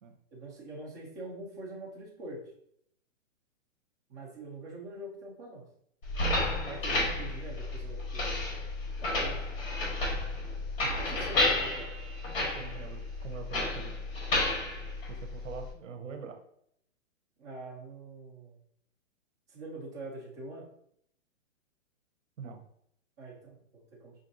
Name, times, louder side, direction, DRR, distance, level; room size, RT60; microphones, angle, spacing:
voice 1, 0.3-2.4 4.1-5.6 6.6-8.5 9.0-9.4 10.9-11.9 17.4-18.6 19.5-20.7 23.2-24.1, right 2 dB, 15° right, -4 dB, 0.5 m, -44 dB
sound 1, 6.0-15.7, left 2 dB, 45° left, 1.6 m, -32 dB
voice 2, 12.4-14.0 15.1-16.4 22.4-22.6, right 5 dB, 70° right, 6 dB, 0.9 m, -44 dB
5.4 x 2.5 x 2.6 m, 0.70 s
hypercardioid pair, 155°, 39 cm